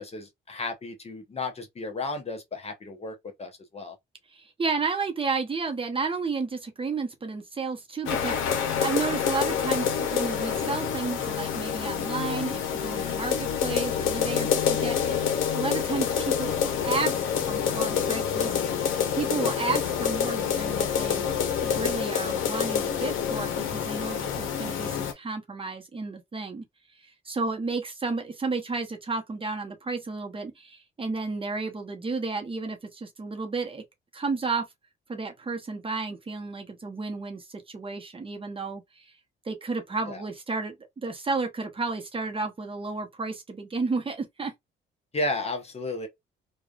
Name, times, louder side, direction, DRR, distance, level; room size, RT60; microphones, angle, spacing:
voice 1, 0.0-4.0 40.1-40.2 45.1-46.1, left 2 dB, 30° left, 0.8 m, -33 dB
voice 2, 4.3-18.9 19.1-21.3 21.6-26.6 27.0-33.8 34.1-34.7 35.1-39.1 39.4-44.5, right 4 dB, 25° right, 0.7 m, -32 dB
sound 1, 8.1-25.1, left 8 dB, 80° left, 0.7 m, -27 dB
3.2 x 2.2 x 2.3 m
cardioid pair, 90°, 20 cm